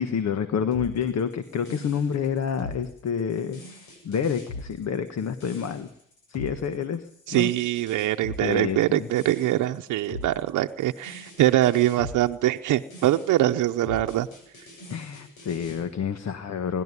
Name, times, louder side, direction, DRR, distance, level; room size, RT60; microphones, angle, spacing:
voice 1, 0.0-5.9 6.3-7.5 8.4-9.1 14.9-16.8, left 7 dB, 60° left, 10 dB, 1.5 m, -28 dB
sound 1, 0.7-15.8, left 2 dB, 80° left, 8.0 m, -42 dB
voice 2, 7.3-14.3, right 14 dB, 80° right, 6 dB, 0.8 m, -23 dB
22.5 x 11.5 x 9.8 m, 0.71 s
cardioid pair, 90°, 30 cm